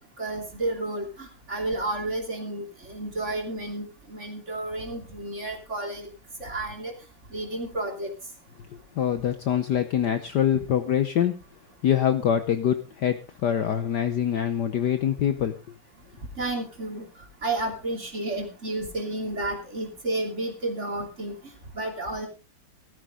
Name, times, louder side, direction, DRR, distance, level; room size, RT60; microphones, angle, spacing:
voice 1, 0.2-6.1 6.4-6.9 7.3-8.1 16.4-17.1 17.4-21.3 21.7-22.3, right 2 dB, 30° right, 3 dB, 3.2 m, -31 dB
voice 2, 9.0-11.4 11.8-15.6, left 9 dB, 60° left, 9 dB, 1.3 m, -24 dB
15.0 x 13.5 x 3.8 m, 0.30 s
omnidirectional pair, 2.4 m